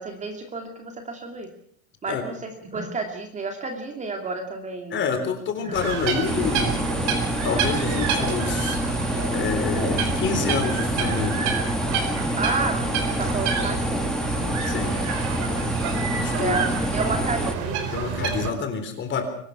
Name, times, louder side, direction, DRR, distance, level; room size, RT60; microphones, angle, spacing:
voice 1, 0.0-1.5 2.0-5.1 5.6-5.8 6.1-6.7 12.4-14.5 16.4-18.1, right 3 dB, 15° right, 4 dB, 2.6 m, -31 dB
voice 2, 4.9-8.8 9.3-11.4 14.7-15.0 16.1-16.6 17.9-19.2, left 6 dB, 25° left, 7 dB, 4.0 m, -28 dB
sound 1, 5.7-18.5, right 6 dB, 45° right, 4.6 m, -28 dB
sound 2, 6.2-17.5, equal, ahead, 1.2 m, -27 dB
23.5 x 19.0 x 6.1 m, 0.63 s
supercardioid pair, 160°, 41 cm